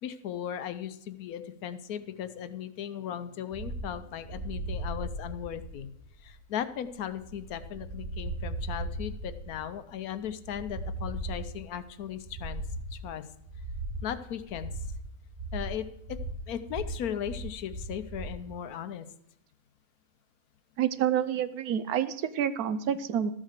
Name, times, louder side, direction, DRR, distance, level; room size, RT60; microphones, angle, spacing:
voice 1, 0.0-5.9 6.2-12.6 12.9-13.2 14.0-14.7 15.5-16.2 16.5-19.1, left 9 dB, 70° left, 12 dB, 1.1 m, -37 dB
sound 1, 3.5-18.4, right 1 dB, 25° right, 0.8 m, -38 dB
voice 2, 20.8-23.3, right 9 dB, 75° right, 13 dB, 1.1 m, -28 dB
13.5 x 7.5 x 6.5 m, 0.75 s
omnidirectional pair, 1.7 m